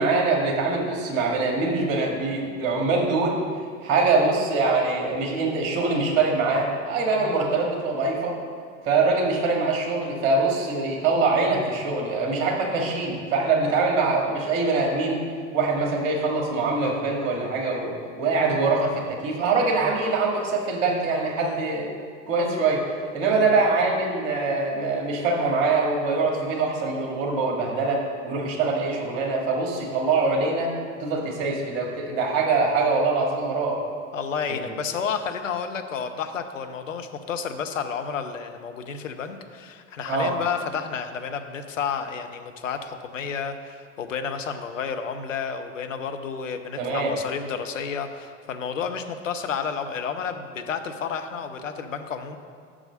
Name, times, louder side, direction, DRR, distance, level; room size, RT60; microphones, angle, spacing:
voice 1, 0.0-3.4 3.8-8.3 8.8-15.2 15.5-21.9 22.3-22.8 23.1-30.7 31.0-33.8 34.5-34.7 40.1-40.3 46.8-47.1, right 3 dB, 45° right, 0 dB, 1.6 m, -23 dB
voice 2, 34.1-52.4, left 6 dB, 75° left, 7 dB, 0.7 m, -31 dB
6.2 x 4.9 x 6.5 m, 2.2 s
figure-of-eight pair, 80°, 39 cm